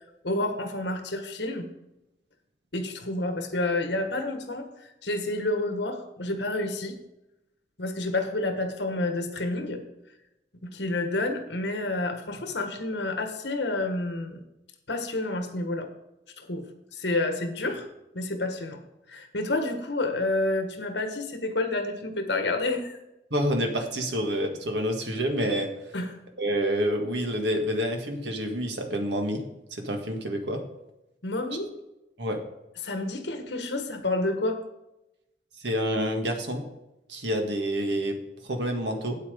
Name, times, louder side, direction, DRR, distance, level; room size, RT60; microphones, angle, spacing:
voice 1, 0.2-1.7 2.7-7.0 7.8-9.8 10.6-14.4 14.9-15.9 16.4-16.7 16.9-17.8 18.1-18.8 19.1-23.0 25.9-26.1 31.2-31.7 32.8-34.6, left 2 dB, 75° left, 6 dB, 1.6 m, -29 dB
voice 2, 23.3-25.7 26.4-29.4 29.7-30.6 32.2-32.4 35.6-36.7 37.1-38.2 38.4-39.2, equal, 80° right, 3 dB, 1.8 m, -28 dB
8.6 x 8.5 x 5.2 m, 0.90 s
head